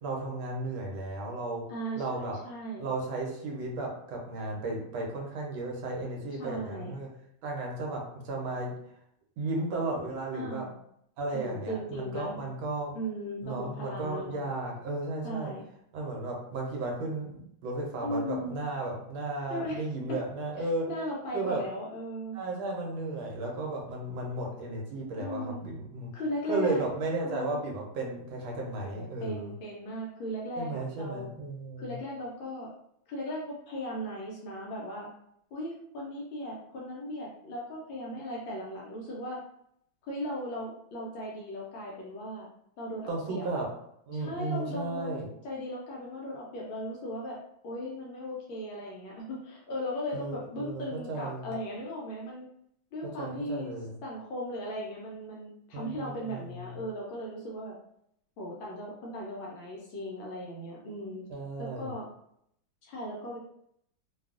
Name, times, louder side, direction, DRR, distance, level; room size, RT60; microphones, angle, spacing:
voice 1, 0.0-1.6 2.0-2.4 2.8-7.1 7.4-8.7 9.4-10.7 11.2-12.9 13.4-15.5 15.9-20.9 21.3-21.6 22.3-26.1 26.5-29.5 30.6-32.0 43.1-43.7 44.1-45.3 50.1-51.5 53.2-53.9 55.7-56.8 61.3-62.0, right 2 dB, 75° right, -1 dB, 1.4 m, -34 dB
voice 2, 1.7-2.8 6.4-6.9 10.3-10.7 11.3-12.4 12.9-14.4 15.2-15.6 18.0-18.6 19.5-20.2 20.9-22.4 25.2-25.6 26.1-26.8 27.2-27.6 28.8-31.3 31.8-32.7 33.1-35.1 35.5-39.4 40.1-42.5 42.8-43.6 44.1-47.4 47.6-52.5 52.9-53.7 54.0-57.7 58.4-61.2 61.6-62.0 62.8-63.4, equal, 75° left, -3 dB, 1.3 m, -37 dB
3.4 x 2.3 x 2.4 m, 0.73 s
omnidirectional pair, 2.3 m